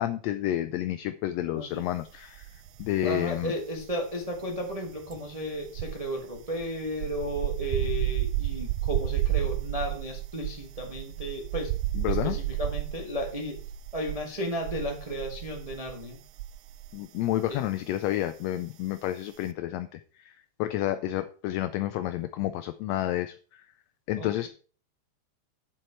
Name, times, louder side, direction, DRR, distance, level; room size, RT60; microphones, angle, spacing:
voice 1, 0.0-3.5 11.9-12.4 16.9-23.7 24.1-24.5, left 13 dB, 80° left, 10 dB, 1.6 m, -30 dB
sound 1, 2.3-3.2 3.4-17.0 17.2-17.5, right 14 dB, 85° right, 2.1 m, -32 dB
voice 2, 3.0-11.7 12.1-13.5 13.9-16.2 17.5-17.6 24.2-24.5, equal, 45° right, 2 dB, 0.4 m, -34 dB
8.1 x 7.5 x 4.4 m, 0.41 s
omnidirectional pair, 3.4 m